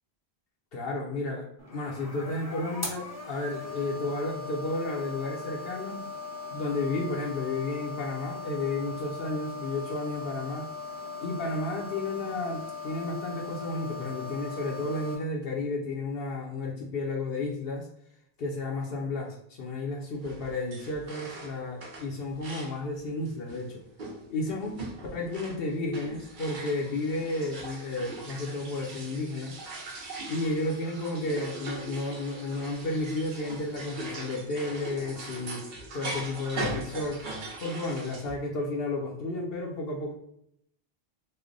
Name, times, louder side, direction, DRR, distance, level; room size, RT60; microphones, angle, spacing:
voice 1, 0.7-6.0 6.5-10.7 11.2-17.9 18.4-23.8 24.3-24.8 25.1-29.5 30.3-35.6 35.9-37.2 37.6-40.1, left 2 dB, 70° left, -1 dB, 0.9 m, -32 dB
sound 1, 1.6-15.1, left 4 dB, 20° left, 0.6 m, -39 dB
sound 2, 20.2-22.8 23.3-38.4, right 2 dB, 55° right, 0.8 m, -40 dB
3.2 x 2.1 x 3.7 m, 0.73 s
omnidirectional pair, 1.0 m